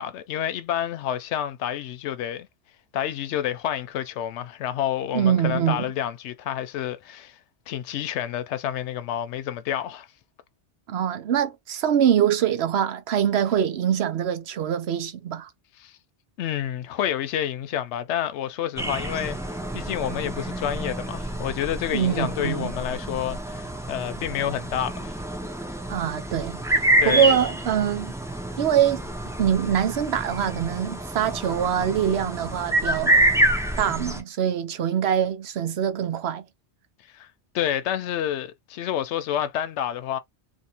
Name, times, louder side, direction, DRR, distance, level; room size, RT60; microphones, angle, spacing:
voice 1, 0.0-2.5 2.9-7.4 7.7-10.1 15.8-16.0 16.4-19.4 19.7-25.1 27.0-27.4 37.1-37.3 37.5-40.2, left 10 dB, 85° left, 0.9 m, -29 dB
voice 2, 5.1-5.9 10.9-15.5 21.9-22.7 25.9-26.6 27.0-28.1 28.6-29.0 29.4-33.2 33.8-36.5, right 9 dB, 70° right, 0.9 m, -24 dB
sound 1, 18.8-34.2, right 1 dB, 5° right, 0.4 m, -27 dB
2.7 x 2.5 x 4.2 m
omnidirectional pair, 1.1 m